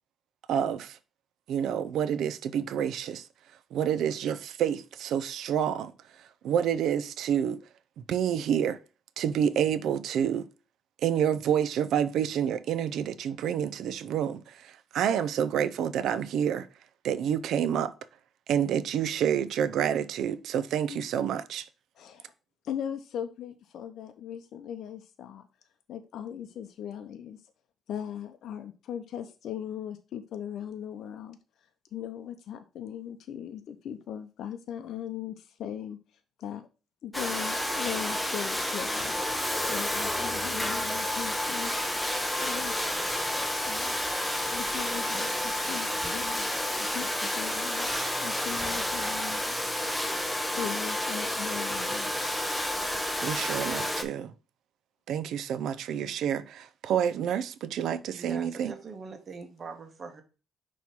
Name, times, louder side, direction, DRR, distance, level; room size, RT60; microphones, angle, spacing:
voice 1, 0.5-1.0 1.5-3.2 3.7-5.9 6.4-7.6 8.0-8.8 9.2-10.5 11.0-16.7 17.0-17.9 18.5-21.7 53.2-54.3 55.1-58.7, right 9 dB, 75° right, 0.5 m, -28 dB
voice 2, 22.0-22.3 22.6-25.5 25.9-27.4 27.9-31.4 31.9-36.0 36.4-36.7 37.0-39.1 39.7-41.7 42.4-42.8 43.6-44.0 44.5-46.5 46.8-49.6 50.6-52.1, left 9 dB, 70° left, 0.6 m, -39 dB
Domestic sounds home sounds, 37.1-54.0, left 1 dB, 5° left, 0.8 m, -30 dB
voice 3, 58.0-60.2, right 4 dB, 45° right, 1.2 m, -43 dB
6.0 x 3.1 x 5.3 m
cardioid pair, 90°, 0 cm